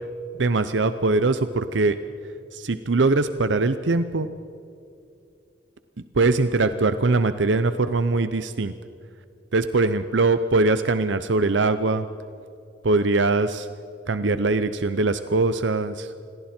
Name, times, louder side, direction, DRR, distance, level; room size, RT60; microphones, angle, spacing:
voice 1, 0.4-2.0 2.5-4.3 6.1-8.7 9.5-12.1 12.8-13.7 14.1-16.1, right 3 dB, 75° right, 11 dB, 0.7 m, -22 dB
28.5 x 22.0 x 4.4 m, 2.6 s
head